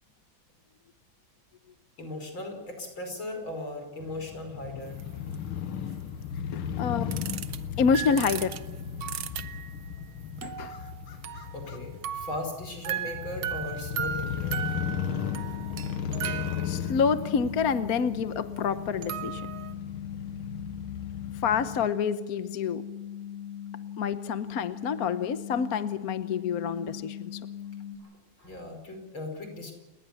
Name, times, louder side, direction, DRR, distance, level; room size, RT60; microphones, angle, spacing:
voice 1, 2.0-5.0 6.6-6.7 7.0-7.1 11.5-14.6 28.0-28.1 28.4-29.7, left 2 dB, 70° left, 5 dB, 6.0 m, -38 dB
Crow / Motorcycle, 4.0-21.9, left 8 dB, 90° left, 2.1 m, -36 dB
sound 1, 5.0-5.1 5.3-5.4 7.1-7.6 7.9-9.9 10.4-11.8 12.0-17.2 18.6-18.7 19.0-19.7, right 9 dB, 80° right, 1.9 m, -36 dB
voice 2, 6.5-7.1 7.8-8.5 10.4-10.7 16.6-19.4 21.4-22.8 24.0-27.4, left 6 dB, 55° left, 12 dB, 1.3 m, -28 dB
sound 2, 14.9-28.0, left 9 dB, 20° right, 8.2 m, -40 dB
30.0 x 20.0 x 7.2 m, 1.1 s
omnidirectional pair, 2.2 m